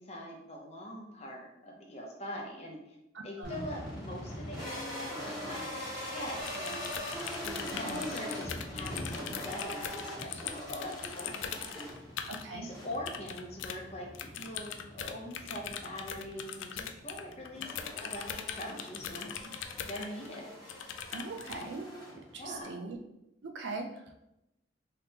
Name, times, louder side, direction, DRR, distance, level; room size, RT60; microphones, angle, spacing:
voice 1, 0.0-2.8 3.2-6.8 7.4-11.9 12.5-14.1 14.4-19.3 19.9-20.4 22.4-22.7, left 1 dB, 35° left, -1 dB, 0.7 m, -43 dB
voice 2, 3.1-3.6 7.7-8.0 12.3-12.7 21.1-21.9 22.3-23.0 23.4-23.9, right 3 dB, 65° right, 4 dB, 0.5 m, -40 dB
sound 1, 3.4-22.6, equal, 5° left, 1.5 m, -42 dB
sound 2, 6.5-12.4 12.9-13.8 14.1-20.4 20.7-21.6, left 8 dB, 80° left, 0.3 m, -41 dB
3.4 x 3.2 x 2.9 m, 0.88 s
head